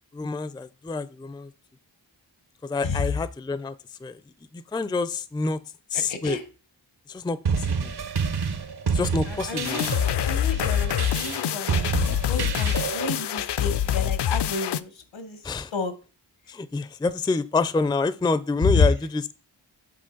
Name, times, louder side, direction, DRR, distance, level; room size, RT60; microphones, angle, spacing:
voice 1, 0.1-1.5 2.6-3.7 4.0-4.2 4.5-5.6 5.9-6.4 7.1-7.9 8.9-9.8 15.4-15.7 16.5-19.3, left 3 dB, 10° left, 15 dB, 0.4 m, -27 dB
voice 2, 6.1-6.4 9.3-9.9 10.2-11.8 12.2-15.4 15.7-15.9 18.6-18.9, left 4 dB, 85° left, 9 dB, 1.2 m, -29 dB
sound 1, 7.5-13.1, right 5 dB, 60° right, 0.9 m, -28 dB
sound 2, 9.6-14.8, left 10 dB, 65° left, 0.5 m, -25 dB
7.6 x 4.0 x 3.9 m, 0.34 s
cardioid pair, 45°, 44 cm